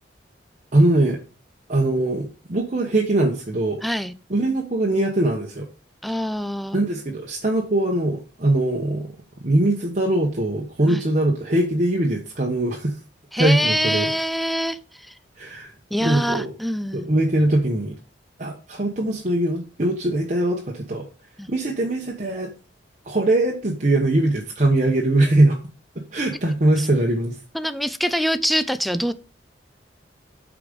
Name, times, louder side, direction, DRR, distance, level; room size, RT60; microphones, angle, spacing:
voice 1, 0.7-1.2 1.7-3.8 4.3-5.7 6.7-9.1 9.4-13.0 13.4-14.1 15.4-15.7 16.0-16.5 16.9-18.0 18.4-21.1 21.5-22.5 23.0-25.6 26.1-27.4, right 1 dB, 40° right, 1.0 m, -21 dB
voice 2, 3.8-4.1 6.0-6.8 10.9-11.1 13.3-15.1 15.9-17.1 21.4-21.5 26.8-26.9 27.5-29.1, equal, ahead, 0.4 m, -25 dB
8.5 x 5.0 x 5.2 m
head